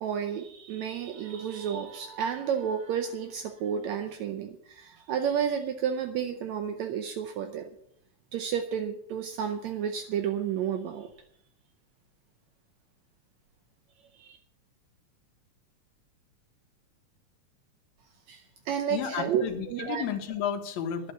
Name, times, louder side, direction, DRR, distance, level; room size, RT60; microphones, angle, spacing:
voice 1, 0.0-7.7 8.3-11.1 14.1-14.4 18.3-20.0, right 8 dB, 75° right, 6 dB, 2.1 m, -31 dB
voice 2, 18.9-21.1, left 8 dB, 75° left, 4 dB, 2.5 m, -32 dB
11.5 x 8.1 x 7.9 m, 0.73 s
omnidirectional pair, 3.3 m